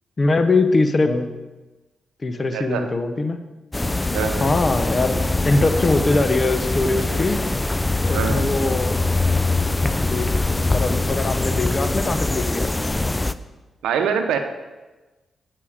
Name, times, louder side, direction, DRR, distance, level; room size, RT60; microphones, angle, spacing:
voice 1, 0.2-1.3 2.2-3.4 4.4-5.2 5.4-7.4 8.1-9.0 10.0-10.3 10.7-12.7, left 3 dB, 35° left, 9 dB, 0.9 m, -21 dB
voice 2, 2.5-2.8 4.1-4.5 8.1-8.5 13.8-14.4, right 7 dB, 85° right, 6 dB, 0.7 m, -24 dB
sound 1, 3.7-13.3, left 2 dB, 20° left, 0.4 m, -23 dB
8.5 x 7.6 x 5.0 m, 1.2 s
supercardioid pair, 55°, 0 cm